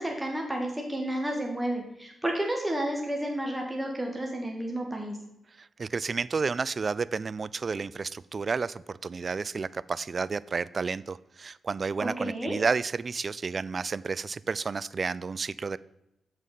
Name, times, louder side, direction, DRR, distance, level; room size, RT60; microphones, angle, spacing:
voice 1, 0.0-5.2 12.0-12.6, right 1 dB, 10° right, 1 dB, 1.7 m, -31 dB
voice 2, 5.6-15.8, right 4 dB, 50° right, 19 dB, 0.3 m, -31 dB
7.6 x 4.8 x 5.6 m, 0.87 s
supercardioid pair, 40°, 0 cm